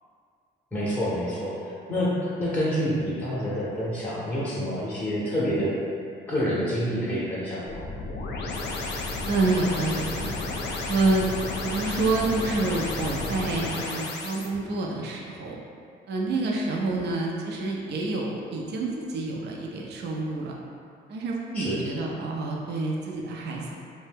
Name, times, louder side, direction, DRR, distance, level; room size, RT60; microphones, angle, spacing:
voice 1, 0.7-1.6 1.9-5.8 6.3-7.8 21.5-21.8, equal, 10° left, -9 dB, 0.6 m, -27 dB
sound 1, 7.7-14.5, left 3 dB, 60° left, 0.4 m, -32 dB
voice 2, 9.2-10.3 10.9-11.3 11.6-15.6 16.1-20.5 21.1-23.7, right 3 dB, 60° right, -1 dB, 0.4 m, -28 dB
2.6 x 2.1 x 3.4 m, 2.4 s
cardioid pair, 90°, 20 cm